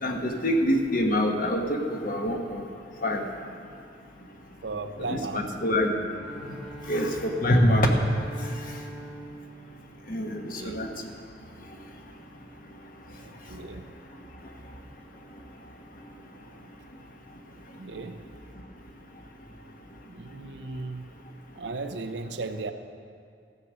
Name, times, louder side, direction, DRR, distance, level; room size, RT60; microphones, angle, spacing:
voice 1, 0.0-2.6 3.0-3.2 5.1-5.9 6.9-7.9 10.1-10.9, equal, 50° left, 2 dB, 1.2 m, -25 dB
voice 2, 4.6-5.5 10.5-10.8 13.2-13.9 17.8-18.3 20.1-21.2 21.6-22.7, right 3 dB, 80° right, 8 dB, 0.7 m, -36 dB
Bowed string instrument, 6.0-10.6, right 1 dB, ahead, 1.2 m, -43 dB
14.0 x 8.1 x 6.2 m, 2.4 s
head